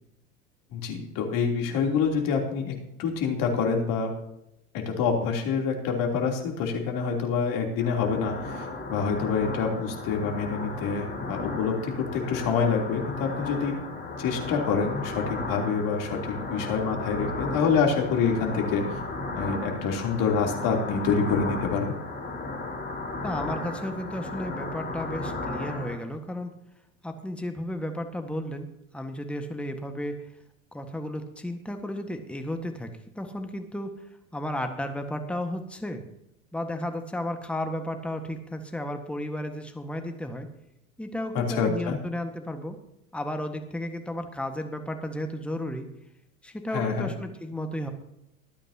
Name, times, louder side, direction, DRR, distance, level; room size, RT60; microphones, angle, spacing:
voice 1, 0.7-4.1 4.7-13.8 14.2-19.0 19.3-22.0 41.3-42.0 46.7-47.1, left 5 dB, 50° left, 1 dB, 3.4 m, -27 dB
sound 1, 7.8-25.9, left 2 dB, 25° left, 4.5 m, -35 dB
voice 2, 23.2-26.5 27.0-28.7 28.9-30.2 30.7-32.9 33.1-34.0 34.3-36.0 36.5-40.5 41.0-42.8 43.1-45.9 46.4-47.9, left 1 dB, 5° left, 6 dB, 1.6 m, -33 dB
24.5 x 9.0 x 2.9 m, 0.83 s
hypercardioid pair, 85°, 43 cm